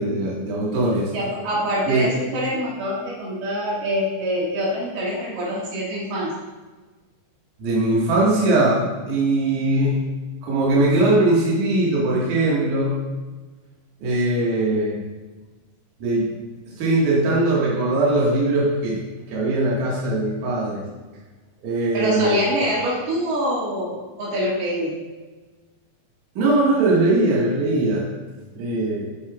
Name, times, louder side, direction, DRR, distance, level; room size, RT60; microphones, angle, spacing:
voice 1, 0.0-1.1 1.9-2.1 7.6-10.0 10.4-12.9 14.0-15.0 16.0-16.4 16.8-19.0 19.3-20.8 21.6-22.4 26.4-28.1 28.5-29.1, right 2 dB, 60° right, -6 dB, 2.7 m, -20 dB
voice 2, 1.1-6.3 21.9-25.0, equal, 85° right, -6 dB, 3.8 m, -25 dB
8.6 x 6.5 x 2.3 m, 1.3 s
omnidirectional pair, 4.4 m